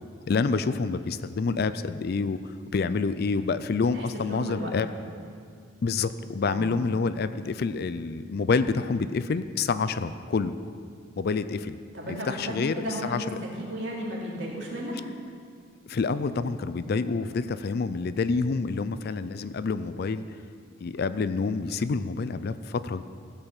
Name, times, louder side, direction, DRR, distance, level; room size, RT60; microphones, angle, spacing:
voice 1, 0.3-2.4 2.7-4.9 5.8-10.6 11.2-11.8 12.1-13.4 15.9-20.2 20.8-23.0, left 4 dB, 50° left, 13 dB, 0.4 m, -27 dB
voice 2, 3.9-4.7 6.4-6.7 11.9-14.9, equal, 60° right, -4 dB, 2.7 m, -34 dB
15.5 x 5.6 x 7.2 m, 2.2 s
head